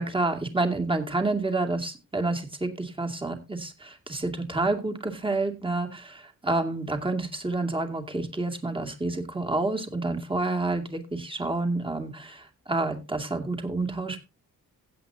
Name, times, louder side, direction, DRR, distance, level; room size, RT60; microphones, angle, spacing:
voice 1, 0.0-14.2, right 2 dB, 15° right, 4 dB, 2.4 m, -29 dB
16.0 x 8.3 x 2.8 m, 0.27 s
cardioid pair, 95°, 36 cm